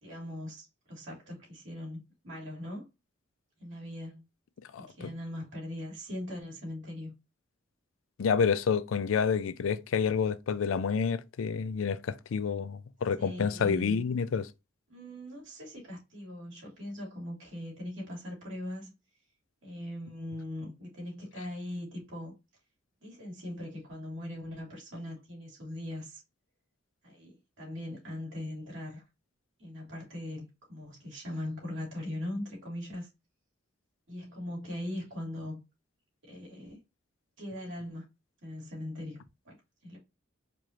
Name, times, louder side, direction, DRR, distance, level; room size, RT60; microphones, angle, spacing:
voice 1, 0.0-2.8 3.6-4.2 4.7-7.1 13.2-14.0 14.9-18.9 19.6-22.3 23.0-26.2 27.0-29.0 29.6-33.1 34.1-35.6 36.2-36.8 37.4-38.1 38.4-39.6 39.8-40.0, left 1 dB, 70° right, 2.5 m, -40 dB
voice 2, 4.7-5.1 8.2-14.5, left 6 dB, 80° left, 0.4 m, -29 dB
4.6 x 2.5 x 2.9 m
head